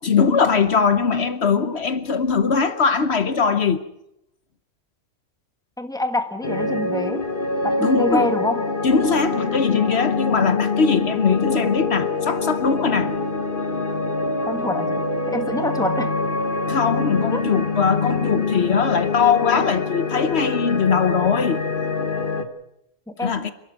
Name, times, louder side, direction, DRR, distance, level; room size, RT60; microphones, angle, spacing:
voice 1, 0.0-3.8 7.8-8.3 8.8-13.1 16.7-21.6 23.2-23.5, left 5 dB, 60° left, 1.2 m, -20 dB
voice 2, 5.8-7.3 7.6-8.7 14.4-14.9 15.3-16.1 17.3-17.4 23.2-23.3, left 2 dB, 5° left, 1.4 m, -25 dB
sound 1, 6.4-22.4, left 3 dB, 45° left, 1.4 m, -25 dB
27.5 x 12.5 x 8.1 m
omnidirectional pair, 1.3 m